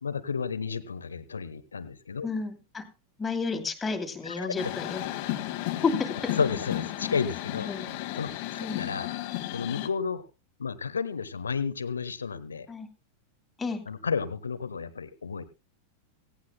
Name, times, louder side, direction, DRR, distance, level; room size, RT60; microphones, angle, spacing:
voice 1, 0.0-2.3 4.2-4.7 6.4-7.7 8.1-9.2 9.5-10.3 10.6-12.7 13.9-15.4, left 5 dB, 75° left, 14 dB, 1.1 m, -32 dB
voice 2, 2.2-2.8 3.2-5.0 5.8-6.1 7.7-7.9 8.6-8.8 12.7-12.9 13.6-13.8, left 4 dB, 15° left, 4 dB, 2.7 m, -31 dB
sound 1, 4.6-9.9, left 15 dB, 45° left, 1.6 m, -33 dB
17.0 x 17.0 x 2.2 m, 0.29 s
figure-of-eight pair, 90°, 0 cm